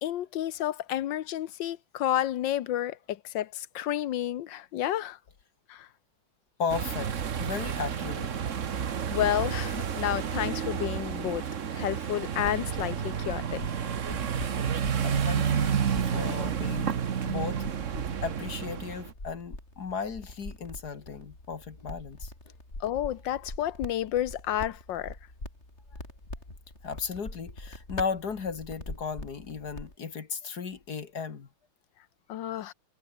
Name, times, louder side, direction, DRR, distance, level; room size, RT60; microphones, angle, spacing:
voice 1, 0.0-5.2 5.7-5.9 9.1-11.4 11.7-13.6 22.8-25.2 32.3-32.7, left 12 dB, 70° left, 1.5 m, -30 dB
voice 2, 6.6-8.3 15.0-17.7 18.2-22.3 26.8-31.5 32.6-32.7, left 5 dB, 50° left, 2.3 m, -35 dB
sound 1, 6.7-19.1, right 7 dB, 45° right, 1.3 m, -30 dB
sound 2, 12.2-29.9, left 1 dB, 30° left, 6.6 m, -44 dB
omnidirectional pair, 2.2 m